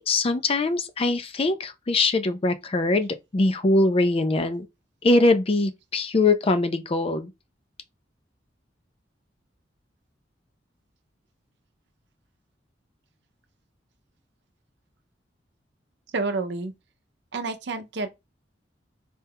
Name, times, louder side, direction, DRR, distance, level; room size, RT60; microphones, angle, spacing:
voice 1, 0.0-4.7 5.0-7.3, left 2 dB, 30° left, 0.4 m, -22 dB
voice 2, 16.1-16.7 17.3-18.1, right 3 dB, 65° right, 0.6 m, -29 dB
4.2 x 2.3 x 3.4 m
head